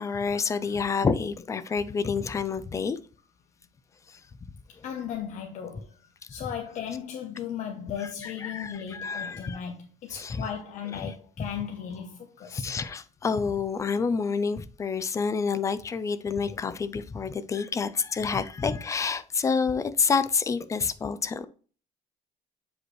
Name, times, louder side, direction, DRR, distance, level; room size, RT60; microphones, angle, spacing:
voice 1, 0.0-3.0 4.1-4.2 8.0-9.6 10.1-10.4 10.9-11.5 12.5-21.5, left 5 dB, 20° left, 0.4 m, -28 dB
voice 2, 4.8-12.7, left 8 dB, 55° left, 0.9 m, -36 dB
8.0 x 5.0 x 3.1 m
cardioid pair, 150°, 15 cm